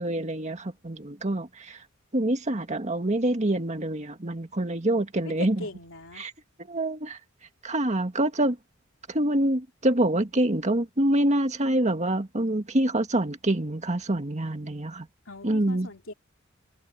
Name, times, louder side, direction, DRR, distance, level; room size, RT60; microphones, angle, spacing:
voice 1, 0.0-1.8 2.1-5.6 6.2-6.3 6.7-7.2 7.6-8.6 9.1-15.1 15.4-15.9, right 1 dB, 35° right, 1.9 m, -26 dB
voice 2, 5.2-6.3 15.3-16.1, left 2 dB, 70° left, 3.5 m, -40 dB
head